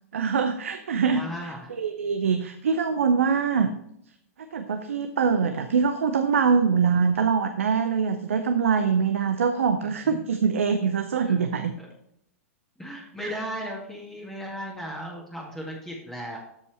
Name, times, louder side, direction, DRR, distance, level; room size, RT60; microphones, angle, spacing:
voice 1, 0.1-1.2 1.7-3.7 4.5-11.7 13.2-13.4, right 6 dB, 65° right, 7 dB, 0.7 m, -23 dB
voice 2, 1.1-1.7 9.8-10.2 11.2-11.4 12.8-16.4, equal, 5° left, -3 dB, 2.0 m, -36 dB
13.0 x 5.3 x 3.3 m, 0.76 s
figure-of-eight pair, 100°, 8 cm